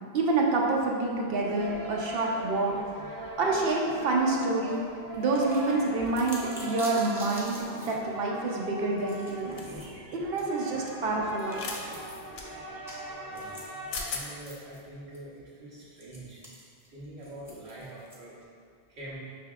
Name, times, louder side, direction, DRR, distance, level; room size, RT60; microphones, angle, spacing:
voice 1, 0.1-2.8 3.1-4.8 5.2-9.6 10.1-11.6, right 3 dB, 70° right, -2 dB, 0.8 m, -28 dB
sound 1, 1.3-14.0, right 1 dB, 35° right, 0.3 m, -40 dB
sound 2, 4.7-4.8 5.1-7.9 8.5-8.6 9.0-9.9 10.4-10.5 11.4-12.3 12.9-13.0 13.3-14.8 15.1-15.2 16.0-18.4, equal, 5° right, 0.6 m, -46 dB
sound 3, 9.6-9.8 11.5-11.8 12.4-12.5 13.6-13.7 13.9-14.2, left 4 dB, 75° left, 0.8 m, -36 dB
voice 2, 13.2-13.7 14.0-16.4 16.9-18.3 18.9-19.2, right 1 dB, 85° right, -7 dB, 1.3 m, -44 dB
5.6 x 3.4 x 2.3 m, 2.2 s
omnidirectional pair, 1.1 m